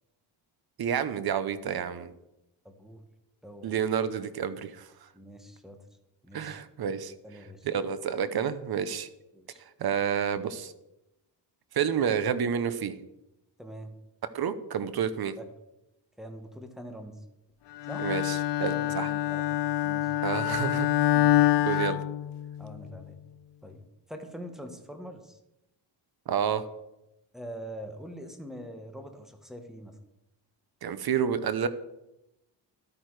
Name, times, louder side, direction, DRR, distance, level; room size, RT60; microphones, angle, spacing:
voice 1, 0.8-2.1 3.6-5.1 6.3-7.1 7.6-9.1 9.8-10.7 11.7-13.0 14.3-15.4 18.0-19.1 20.2-20.9 21.7-22.0 26.3-26.7 30.8-31.7, right 8 dB, 55° right, 13 dB, 0.8 m, -29 dB
voice 2, 2.6-3.0 3.4-3.8 5.1-5.8 6.2-6.5 7.2-7.7 9.3-9.6 13.6-13.9 15.4-15.5 16.2-17.2 17.9-18.1 18.7-20.1 21.1-21.3 21.6-21.7 22.6-23.2 23.6-23.8 24.1-25.4 27.3-29.9, equal, ahead, 5 dB, 1.4 m, -43 dB
Bowed string instrument, 17.8-22.8, left 13 dB, 65° left, 0.5 m, -26 dB
12.5 x 9.0 x 4.8 m, 0.91 s
wide cardioid pair, 140°, 44 cm